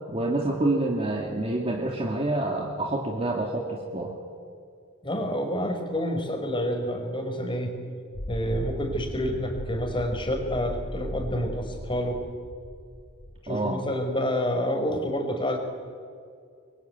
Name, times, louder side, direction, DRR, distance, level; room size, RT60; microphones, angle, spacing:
voice 1, 0.1-4.1 13.5-13.8, right 2 dB, 30° right, 0 dB, 2.5 m, -27 dB
voice 2, 5.0-7.7 8.3-12.2 13.4-15.6, equal, 25° left, 4 dB, 4.6 m, -28 dB
sound 1, 8.1-13.4, equal, 45° left, 1.8 m, -37 dB
26.5 x 22.5 x 9.6 m, 2.3 s
head